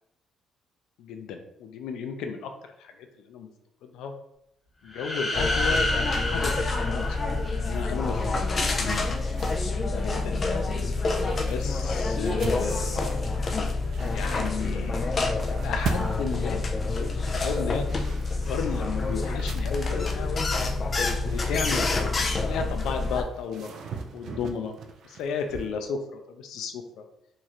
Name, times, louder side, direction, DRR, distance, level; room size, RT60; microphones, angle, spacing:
voice 1, 1.0-2.5 2.8-2.9 3.3-3.5 3.8-4.1 4.8-7.1 7.5-8.2 8.7-9.2 9.6-10.4 11.3-13.2 14.0-15.1 15.5-16.6 16.9-18.2 18.5-20.4 21.2-23.7 24.1-24.7 25.0-27.0, left 6 dB, 90° left, 5 dB, 0.4 m, -34 dB
sound 1, 4.9-7.8, left 2 dB, 5° left, 0.9 m, -29 dB
sound 2, 5.3-23.2, left 3 dB, 25° left, 0.4 m, -27 dB
sound 3, 7.8-25.8, right 5 dB, 55° right, 0.4 m, -41 dB
3.0 x 2.5 x 4.1 m, 0.77 s
cardioid pair, 175°, 0 cm